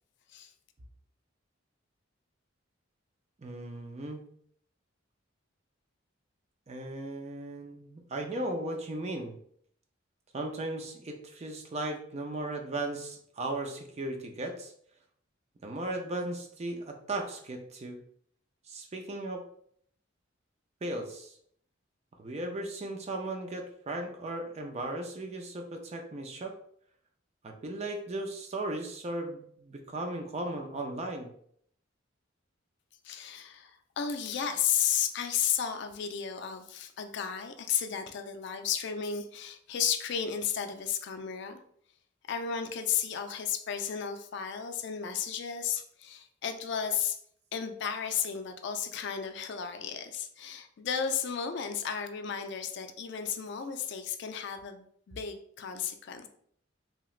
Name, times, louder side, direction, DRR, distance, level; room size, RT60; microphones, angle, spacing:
voice 1, 3.4-4.2 6.7-9.4 10.3-14.7 15.6-18.0 18.7-19.4 20.8-21.4 22.2-26.5 27.4-31.3, right 2 dB, 35° right, 3 dB, 0.4 m, -36 dB
voice 2, 33.0-41.6 42.3-47.2 47.5-56.3, left 8 dB, 60° left, 7 dB, 0.3 m, -33 dB
3.1 x 2.9 x 2.4 m, 0.64 s
head